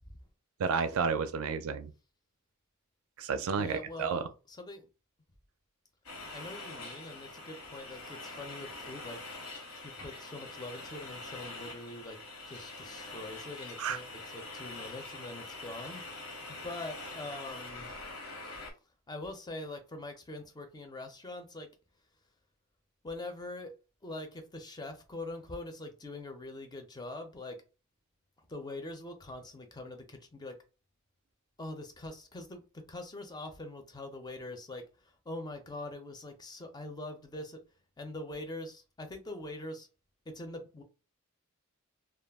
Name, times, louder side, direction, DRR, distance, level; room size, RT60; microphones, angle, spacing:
voice 1, 0.6-1.9 3.2-4.3 13.8-14.0, right 5 dB, 70° right, 0.4 m, -31 dB
voice 2, 3.6-4.9 6.3-9.2 9.8-12.2 12.5-17.9 19.1-21.7 23.0-23.7 24.0-27.6 28.4-30.6 31.6-37.6 38.0-39.9 40.3-40.8, left 2 dB, 20° left, 0.4 m, -43 dB
sound 1, 6.0-18.7, left 2 dB, 90° left, 1.1 m, -44 dB
2.2 x 2.0 x 3.3 m
head